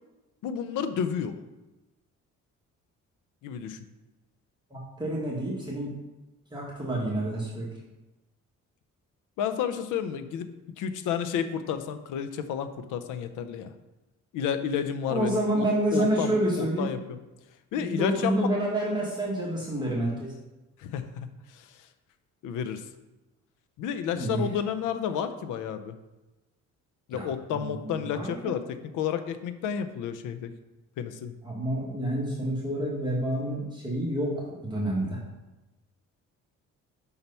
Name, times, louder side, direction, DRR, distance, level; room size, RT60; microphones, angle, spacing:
voice 1, 0.4-1.4 3.4-3.8 7.4-7.5 9.4-10.5 10.8-13.7 14.3-15.7 15.9-17.2 17.7-18.5 20.8-21.3 21.5-21.7 22.4-22.8 23.8-25.9 27.1-30.5 31.0-31.3, left 8 dB, 90° left, 10 dB, 0.7 m, -31 dB
voice 2, 4.7-5.9 6.5-7.7 15.1-16.9 17.8-20.3 24.1-24.4 27.1-27.3 27.5-28.6 31.4-35.2, right 1 dB, 15° right, -5 dB, 1.6 m, -28 dB
5.6 x 4.5 x 5.5 m, 1.1 s
cardioid pair, 90°, 30 cm